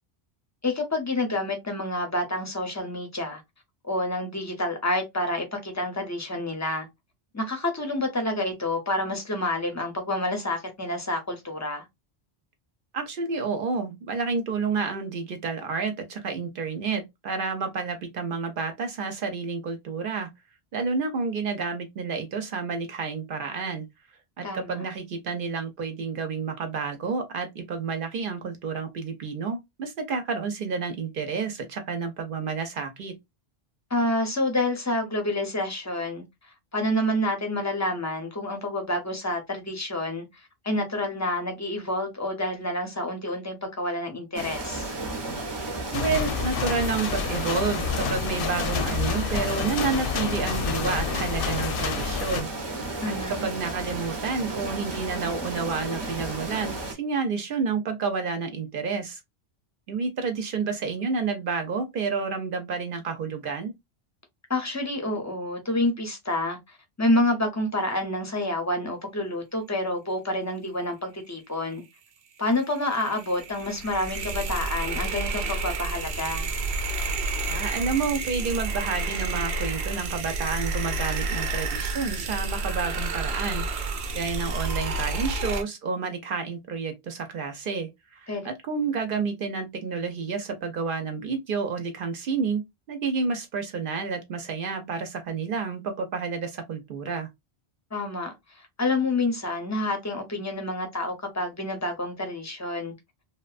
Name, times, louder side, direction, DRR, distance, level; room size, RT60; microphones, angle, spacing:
voice 1, 0.6-3.4 3.8-6.9 7.3-11.8 24.4-24.8 33.9-36.2 36.7-40.3 40.6-44.9 53.0-53.5 64.5-71.8 72.4-76.5 88.3-88.4 97.9-98.3 98.8-102.9, left 1 dB, 20° left, 0.6 m, -28 dB
voice 2, 12.9-20.3 20.7-23.9 24.4-33.1 45.9-52.5 53.1-59.2 59.9-63.7 77.5-83.6 84.1-92.6 92.9-97.3, right 5 dB, 65° right, 0.7 m, -30 dB
sound 1, 44.3-56.9, right 2 dB, 30° right, 0.5 m, -33 dB
sound 2, 45.9-52.4, left 7 dB, 65° left, 0.7 m, -29 dB
sound 3, 72.5-85.6, right 3 dB, 90° right, 0.9 m, -30 dB
2.7 x 2.1 x 2.3 m
omnidirectional pair, 1.0 m